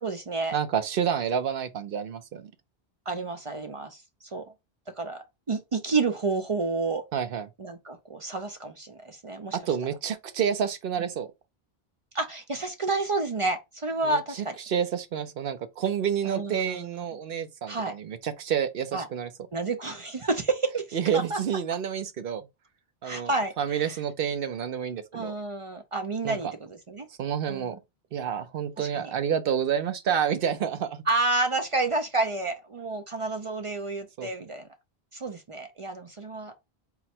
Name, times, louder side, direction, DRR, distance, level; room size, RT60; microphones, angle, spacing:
voice 1, 0.0-0.6 3.1-4.0 4.3-4.4 5.0-7.0 7.6-9.6 12.1-14.5 16.2-16.9 17.7-17.9 18.9-19.1 19.5-21.4 23.0-23.9 25.1-27.1 27.5-27.8 28.8-29.1 31.1-34.6 35.1-36.6, right 3 dB, 45° right, 0.4 m, -30 dB
voice 2, 0.5-2.5 7.1-7.5 9.5-11.3 14.0-19.3 20.9-22.5 23.0-25.3 26.2-26.5 27.2-27.8 28.1-31.0 34.2-34.3, right 8 dB, 65° right, 0.8 m, -29 dB
4.0 x 2.1 x 4.2 m
omnidirectional pair, 1.0 m